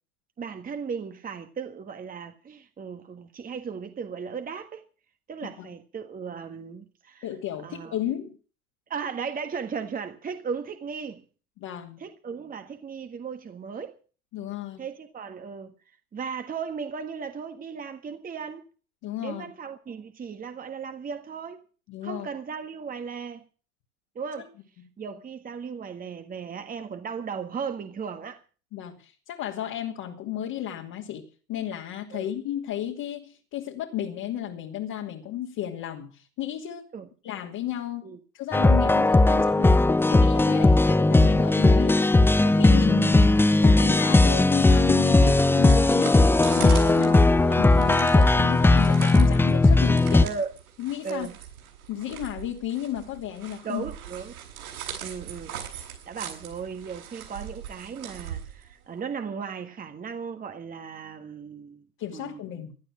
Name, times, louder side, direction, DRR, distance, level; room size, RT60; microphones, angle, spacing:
voice 1, 0.4-4.8 5.3-7.2 7.6-8.0 8.9-11.2 12.0-14.0 14.8-15.7 16.1-18.6 19.2-21.6 22.0-23.4 24.1-24.5 25.0-28.4 32.1-32.3 36.9-37.1 38.0-38.2 40.5-40.7 41.7-41.8 50.2-50.5 51.0-51.3 53.6-54.4 55.0-61.9 62.1-62.4, right 6 dB, 20° right, 1.6 m, -36 dB
voice 2, 7.2-8.4 11.6-12.0 14.3-14.9 19.0-19.5 21.9-22.3 24.4-24.5 28.7-36.9 37.2-39.7 40.1-42.0 42.4-43.3 43.6-46.3 46.5-47.2 47.6-50.2 50.8-51.3 51.9-53.8 62.0-62.8, left 11 dB, 45° left, 2.7 m, -33 dB
sound 1, 38.5-50.3, left 2 dB, 5° left, 0.8 m, -18 dB
sound 2, 45.4-59.0, right 9 dB, 75° right, 7.9 m, -41 dB
17.5 x 11.5 x 6.3 m
hypercardioid pair, 95°, 43 cm